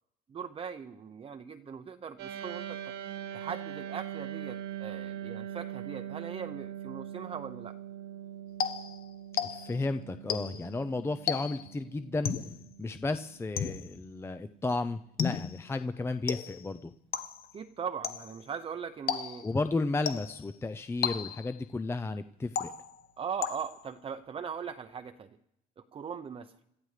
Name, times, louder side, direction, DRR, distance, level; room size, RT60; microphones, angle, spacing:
voice 1, 0.3-2.8 3.3-7.8 17.5-19.4 23.2-25.3 25.9-26.5, right 7 dB, 35° right, 7 dB, 0.7 m, -40 dB
sound 1, 2.2-13.7, right 10 dB, 80° right, 2.1 m, -42 dB
sound 2, 8.6-9.9 10.3-10.7 11.3-11.8 12.2-12.6 13.6-14.0 15.2-15.7 16.3-16.7 17.1-17.5 18.0-18.4 19.1-19.6 20.1-20.5 21.0-21.6 22.6-23.1 23.4-23.9, left 8 dB, 60° left, 1.2 m, -34 dB
voice 2, 9.5-12.3 12.8-16.9 19.4-22.7, left 3 dB, 15° left, 10 dB, 0.5 m, -33 dB
27.0 x 14.0 x 3.3 m, 0.79 s
cardioid pair, 110°, 17 cm